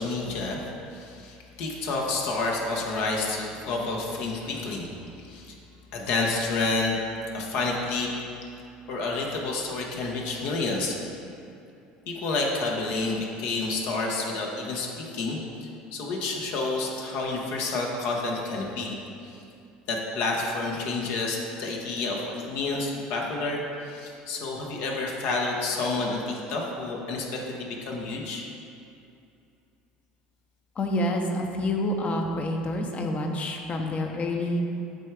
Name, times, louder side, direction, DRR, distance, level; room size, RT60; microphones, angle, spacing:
voice 1, 0.0-4.9 5.2-5.5 5.9-7.0 7.3-8.1 8.9-11.0 12.1-19.0 19.2-19.4 19.9-28.4, left 3 dB, 65° left, -1 dB, 1.0 m, -29 dB
voice 2, 30.8-34.6, left 1 dB, 35° left, 2 dB, 0.9 m, -28 dB
8.1 x 3.4 x 4.7 m, 2.6 s
hypercardioid pair, 80°, 4 cm